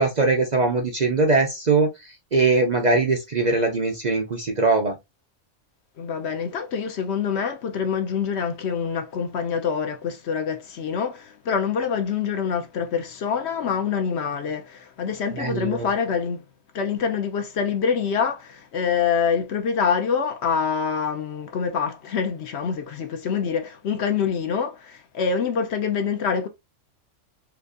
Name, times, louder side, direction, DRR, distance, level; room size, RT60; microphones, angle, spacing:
voice 1, 0.0-4.9 15.3-15.9, right 3 dB, 50° right, 0.5 m, -21 dB
voice 2, 6.0-16.4 16.7-26.5, left 6 dB, 60° left, 0.8 m, -25 dB
4.5 x 2.5 x 2.5 m
omnidirectional pair, 1.5 m